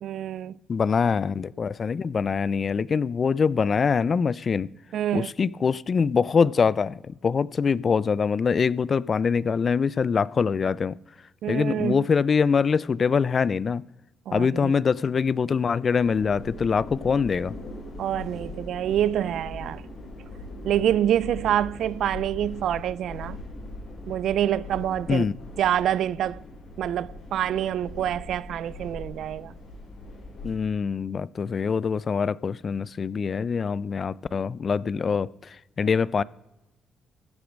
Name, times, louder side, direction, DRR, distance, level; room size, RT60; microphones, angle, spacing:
voice 1, 0.0-0.6 4.9-5.3 11.4-12.0 14.3-14.7 18.0-19.8 20.6-23.4 24.1-25.3 25.6-26.4 26.8-29.5, right 11 dB, 75° right, 0.3 m, -26 dB
voice 2, 0.7-4.7 5.1-11.0 11.5-13.8 14.3-17.5 25.1-25.3 30.4-36.2, left 5 dB, 40° left, 0.3 m, -24 dB
sound 1, 16.0-30.5, left 2 dB, 65° left, 4.2 m, -40 dB
14.5 x 8.3 x 5.1 m
cardioid pair, 90°, 0 cm